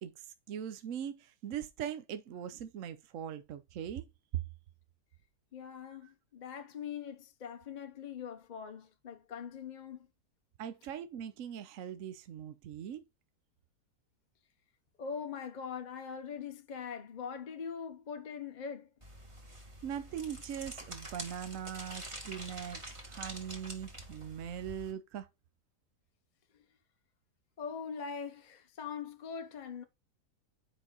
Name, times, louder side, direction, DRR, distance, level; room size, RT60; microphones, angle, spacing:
voice 1, 0.0-4.0 4.3-4.4 10.6-13.0 19.8-25.3, right 9 dB, 65° right, 0.9 m, -41 dB
voice 2, 5.5-10.1 15.0-18.9 27.6-29.8, left 6 dB, 45° left, 0.6 m, -42 dB
sound 1, 19.0-24.9, right 1 dB, 20° right, 1.7 m, -46 dB
7.2 x 5.1 x 3.9 m
omnidirectional pair, 1.8 m